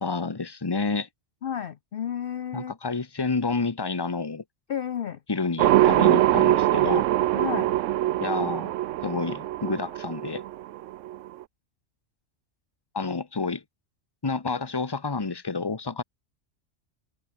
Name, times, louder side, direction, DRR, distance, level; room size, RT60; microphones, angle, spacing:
voice 1, 0.0-1.1 2.5-4.4 5.3-7.1 8.2-8.7 9.0-10.4 12.9-13.6 14.2-16.0, left 4 dB, 20° left, 1.1 m, -29 dB
voice 2, 1.4-2.7 4.7-5.2 6.3-6.5 7.3-7.7, left 9 dB, 55° left, 0.8 m, -32 dB
sound 1, 5.6-11.4, right 14 dB, 80° right, 0.9 m, -23 dB
open air
omnidirectional pair, 1.3 m